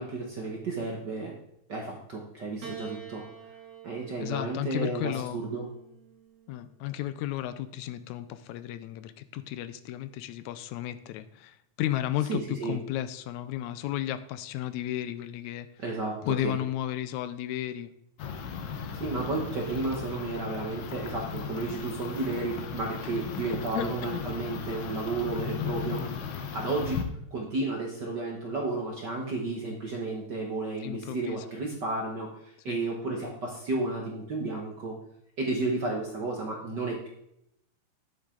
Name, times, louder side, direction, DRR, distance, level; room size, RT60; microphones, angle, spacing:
voice 1, 0.0-1.3 1.7-3.2 3.8-5.6 12.3-12.8 15.8-16.6 19.0-27.0 27.3-35.0 35.4-37.1, right 3 dB, 50° right, -1 dB, 1.4 m, -32 dB
Piano, 2.6-7.1 8.1-8.9, right 7 dB, 65° right, 2.4 m, -48 dB
voice 2, 4.2-5.4 6.5-15.7 16.2-17.9 23.7-24.2 30.8-31.4 32.7-32.8, left 13 dB, 90° left, 13 dB, 2.0 m, -33 dB
sound 1, 18.2-27.0, left 6 dB, 65° left, 1.2 m, -36 dB
10.5 x 8.0 x 3.8 m, 0.77 s
omnidirectional pair, 3.3 m